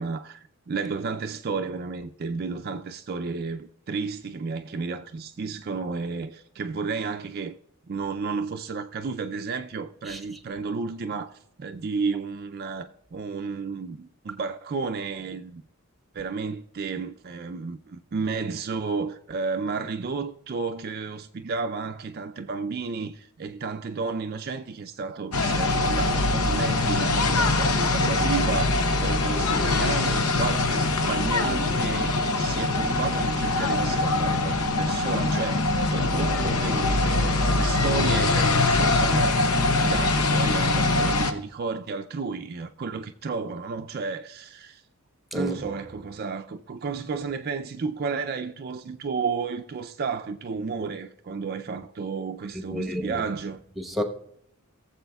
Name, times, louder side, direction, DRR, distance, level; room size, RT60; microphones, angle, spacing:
voice 1, 0.0-7.6 7.9-15.6 16.1-44.8 45.3-53.6, right 4 dB, 45° right, 0.4 m, -32 dB
sound 1, 25.3-41.3, left 2 dB, 80° left, 0.8 m, -23 dB
voice 2, 52.5-53.2 53.8-54.0, equal, ahead, 1.0 m, -30 dB
18.5 x 7.4 x 2.3 m
head